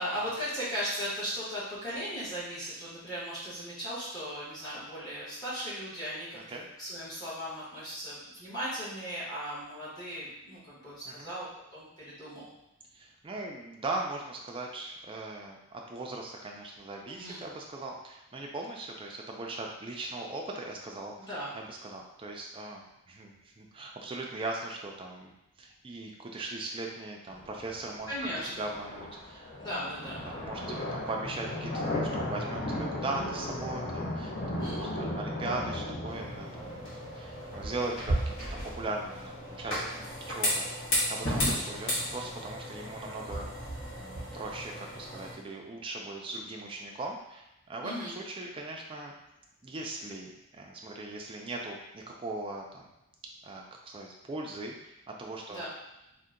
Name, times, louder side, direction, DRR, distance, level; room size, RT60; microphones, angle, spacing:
voice 1, 0.0-12.5 17.0-17.4 21.2-21.5 28.1-28.7 29.6-30.2 34.4-34.8 47.8-48.2 55.5-55.7, equal, 20° left, -10 dB, 1.1 m, -37 dB
voice 2, 12.9-25.3 25.6-28.1 28.4-29.9 30.2-36.8 37.1-40.7 41.1-43.5 44.0-49.2 49.6-52.9 53.4-55.7, right 2 dB, 25° right, 0 dB, 0.3 m, -39 dB
sound 1, 27.3-41.2, left 1 dB, 35° left, 0.6 m, -37 dB
sound 2, 36.1-45.3, equal, 60° left, 1.0 m, -34 dB
2.7 x 2.1 x 3.6 m, 0.89 s
head